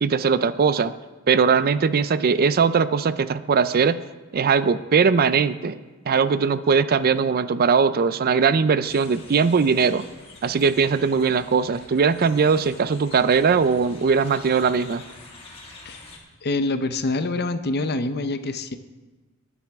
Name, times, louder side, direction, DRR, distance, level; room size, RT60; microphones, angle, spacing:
voice 1, 0.0-0.9 1.3-4.0 4.3-5.8 6.1-10.1 10.4-15.0, right 5 dB, 45° right, 14 dB, 0.4 m, -20 dB
sound 1, 8.8-16.2, left 3 dB, 25° left, 2.1 m, -46 dB
voice 2, 16.4-18.8, left 2 dB, 50° left, 10 dB, 0.7 m, -26 dB
20.0 x 9.6 x 3.5 m, 1.3 s
head